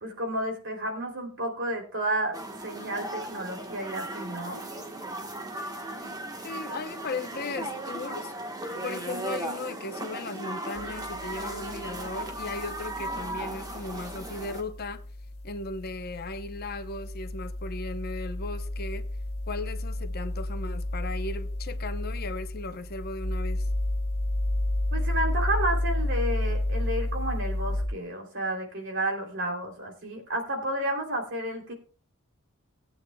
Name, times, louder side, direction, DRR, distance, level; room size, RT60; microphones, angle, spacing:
voice 1, 0.0-2.4 2.6-4.6 24.9-31.7, right 1 dB, 60° right, 3.0 m, -31 dB
sound 1, 2.3-14.6, right 1 dB, 15° right, 1.2 m, -37 dB
voice 2, 6.4-8.3 8.8-15.0 15.4-19.1 19.5-23.7, left 3 dB, 45° left, 0.7 m, -36 dB
sound 2, 10.8-27.9, left 1 dB, 85° left, 1.5 m, -32 dB
19.5 x 8.6 x 2.2 m
head